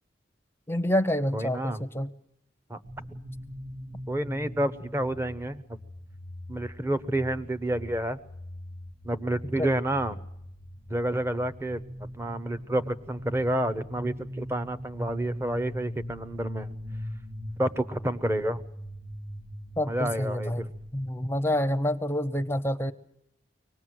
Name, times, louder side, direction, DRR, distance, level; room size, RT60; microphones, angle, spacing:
voice 1, 0.7-2.1 9.6-9.7 19.8-20.7 20.9-22.9, left 1 dB, 15° left, 10 dB, 0.8 m, -27 dB
voice 2, 1.3-1.8 2.7-2.8 3.1-3.2 4.1-5.8 6.5-8.2 9.0-10.2 10.9-11.8 12.2-16.7 17.6-18.6 19.9-20.7, right 1 dB, 15° right, 13 dB, 0.9 m, -29 dB
sound 1, 2.8-21.1, equal, 90° right, 3.1 m, -41 dB
24.5 x 19.0 x 7.8 m, 0.77 s
head